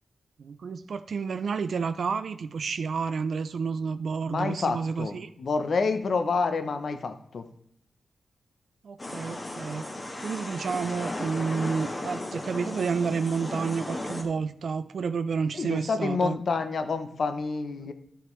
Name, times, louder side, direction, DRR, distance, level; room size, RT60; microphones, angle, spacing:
voice 1, 0.4-5.3 8.8-9.9 10.2-16.4, right 5 dB, 75° right, 11 dB, 0.4 m, -30 dB
voice 2, 4.3-7.5 15.5-17.9, left 4 dB, 65° left, 9 dB, 0.7 m, -28 dB
sound 1, 9.0-14.2, left 1 dB, 30° left, 1.4 m, -35 dB
12.0 x 5.7 x 3.2 m, 0.71 s
wide cardioid pair, 95°, 0 cm